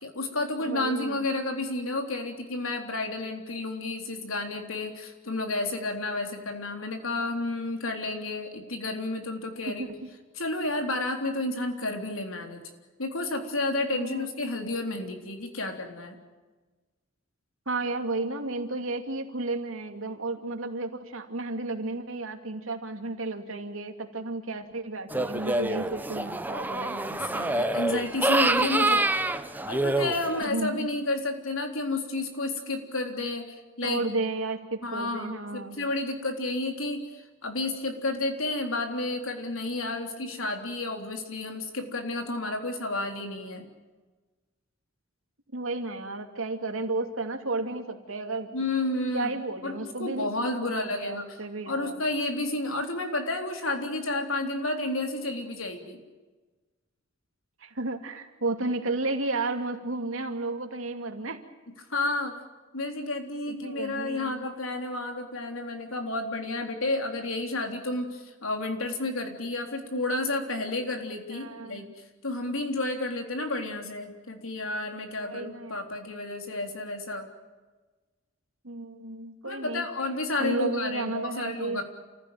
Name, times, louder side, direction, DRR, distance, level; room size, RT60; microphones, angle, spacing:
voice 1, 0.0-9.9 10.4-12.6 13.0-16.2 27.3-29.1 29.7-34.0 34.8-43.7 48.5-49.4 49.6-51.3 51.7-56.0 61.9-62.3 62.7-71.8 72.2-77.3 79.4-81.8, left 2 dB, 85° left, 4 dB, 3.7 m, -31 dB
voice 2, 0.6-1.2 9.7-10.1 13.8-14.3 17.7-27.5 30.4-30.7 33.8-35.8 45.5-48.5 49.1-50.3 50.6-52.0 57.6-61.4 63.5-64.5 71.3-71.9 75.2-75.9 78.6-79.9 80.4-81.8, right 2 dB, 80° right, 5 dB, 2.6 m, -33 dB
sound 1, 25.1-30.4, right 2 dB, 10° right, 0.9 m, -26 dB
28.5 x 15.5 x 9.2 m, 1.3 s
head